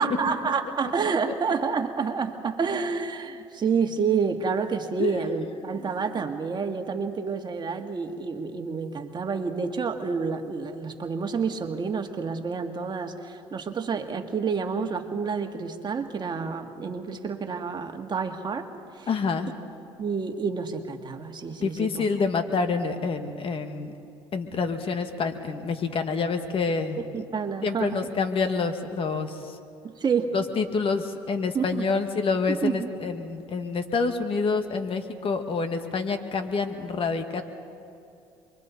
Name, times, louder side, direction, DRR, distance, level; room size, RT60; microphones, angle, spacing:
voice 1, 0.0-19.1 20.0-22.1 27.0-28.1 29.8-30.3 31.5-31.9 32.5-32.9, right 5 dB, 40° right, 5 dB, 1.8 m, -29 dB
voice 2, 19.1-19.5 21.6-23.9 24.3-27.0 27.6-29.5 30.3-37.4, left 4 dB, 50° left, 7 dB, 1.7 m, -27 dB
28.0 x 23.0 x 4.2 m, 2.6 s
supercardioid pair, 80°, 12 cm